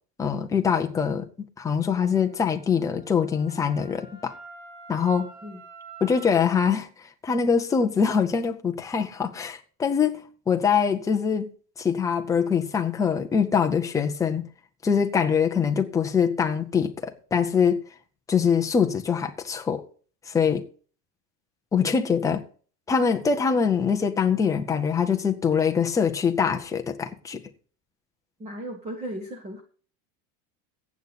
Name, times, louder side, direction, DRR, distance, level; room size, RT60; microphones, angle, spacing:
voice 1, 0.2-1.3 1.6-4.3 4.9-5.3 6.0-6.9 7.2-11.5 11.8-14.5 14.8-17.8 18.3-19.8 20.3-20.6 21.7-22.4 22.9-27.4, left 6 dB, 5° left, 0.5 m, -23 dB
Wind instrument woodwind instrument, 1.9-6.6, right 5 dB, 60° right, 7.3 m, -47 dB
voice 2, 28.4-29.6, right 1 dB, 15° right, 1.2 m, -36 dB
15.0 x 8.3 x 4.0 m
supercardioid pair, 165°, 50 cm